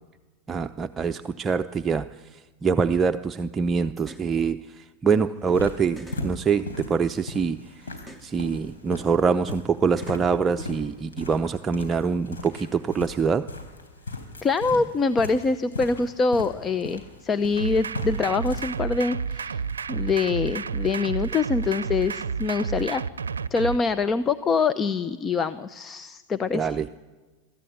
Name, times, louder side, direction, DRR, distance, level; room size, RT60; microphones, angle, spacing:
voice 1, 0.5-13.5 14.7-14.8 26.5-26.9, right 5 dB, 25° right, 7 dB, 0.6 m, -25 dB
sound 1, 4.0-4.3 5.5-5.6 6.0-7.4 8.0-8.3 9.5-9.6 10.0-11.1, equal, 5° left, 1.1 m, -43 dB
sound 2, 5.4-18.8, left 2 dB, 85° left, 4.0 m, -39 dB
voice 2, 14.4-19.6 19.9-23.0 23.5-26.7, left 4 dB, 25° left, 14 dB, 0.8 m, -25 dB
sound 3, 17.6-23.8, right 6 dB, 85° right, 0.6 m, -30 dB
22.5 x 13.5 x 9.5 m, 1.4 s
hypercardioid pair, 90°, 0 cm